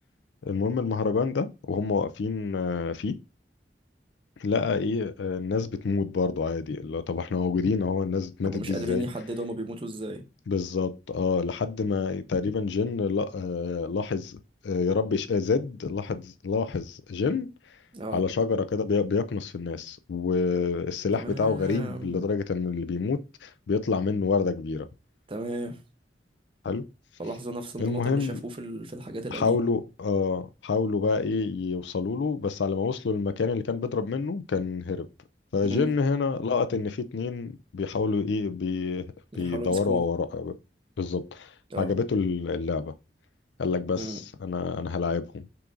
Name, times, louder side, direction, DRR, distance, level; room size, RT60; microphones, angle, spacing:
voice 1, 0.4-3.1 4.4-9.1 10.5-14.4 14.6-17.5 18.1-24.9 26.6-26.9 27.8-28.4 29.3-35.1 35.5-40.5 41.0-41.5 41.8-42.9 43.6-45.4, left 4 dB, 85° left, 0.4 m, -27 dB
voice 2, 8.4-10.3 17.9-18.2 21.1-22.3 25.3-25.8 27.2-29.6 35.7-35.9 39.3-40.0 41.7-41.9 44.0-44.2, right 1 dB, 30° right, 0.7 m, -34 dB
5.7 x 2.5 x 3.8 m
head